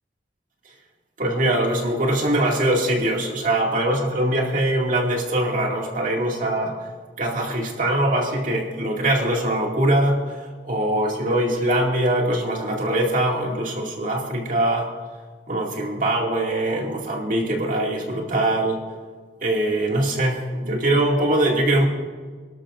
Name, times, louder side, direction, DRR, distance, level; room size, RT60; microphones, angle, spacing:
voice 1, 1.2-6.7 7.2-10.2 10.6-14.9 15.5-18.8 19.4-21.9, right 1 dB, 50° right, -1 dB, 2.3 m, -22 dB
27.5 x 12.5 x 2.6 m, 1.5 s
head